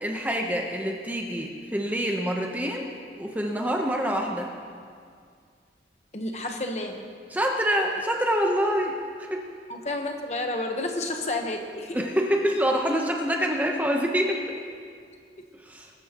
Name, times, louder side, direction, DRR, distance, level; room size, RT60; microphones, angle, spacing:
voice 1, 0.0-4.5 7.3-8.9 9.2-9.4 11.9-14.4 15.7-15.9, equal, 10° right, 1 dB, 0.9 m, -26 dB
voice 2, 6.1-7.1 9.7-12.0, left 2 dB, 40° left, 3 dB, 1.1 m, -30 dB
21.5 x 12.5 x 3.0 m, 2.1 s
head